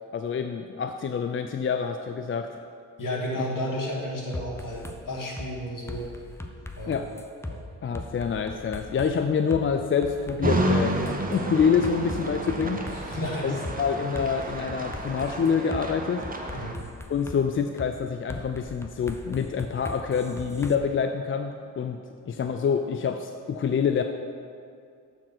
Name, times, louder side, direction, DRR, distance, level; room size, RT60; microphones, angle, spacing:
voice 1, 0.1-2.6 6.9-7.0 7.8-10.9 11.3-12.8 13.4-16.2 17.1-22.0 22.3-24.0, left 6 dB, 30° left, 7 dB, 0.4 m, -26 dB
voice 2, 3.0-6.1 6.8-7.0 7.5-7.6 12.9-13.6 16.5-16.8, left 1 dB, 50° left, -3 dB, 2.1 m, -32 dB
sound 1, 4.3-5.0 5.4-5.5 5.9-7.6 7.9-9.1 9.5-9.6 10.0-13.3 13.6-13.8 14.2-15.8 16.2-17.4 17.8-17.9 18.3-20.8, left 1 dB, 5° left, 0.7 m, -39 dB
sound 2, 10.4-16.7, right 1 dB, 20° right, 1.0 m, -30 dB
7.2 x 4.5 x 6.0 m, 2.3 s
supercardioid pair, 40°, 41 cm